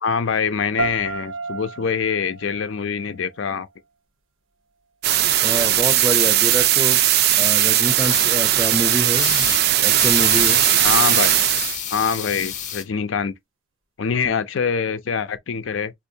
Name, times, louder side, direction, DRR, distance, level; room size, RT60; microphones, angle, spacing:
voice 1, 0.0-3.7 10.8-11.3 11.9-13.3 14.0-15.9, left 6 dB, 70° left, 0.5 m, -24 dB
sound 1, 0.8-3.8, right 4 dB, 85° right, 0.9 m, -33 dB
sound 2, 5.0-11.8, right 12 dB, 50° right, 0.4 m, -18 dB
voice 2, 5.4-7.0 7.3-9.5 9.8-10.7, right 1 dB, ahead, 0.5 m, -26 dB
sound 3, 8.0-8.3 9.1-9.6 9.9-12.8, left 8 dB, 40° left, 0.7 m, -29 dB
4.4 x 2.5 x 2.6 m
head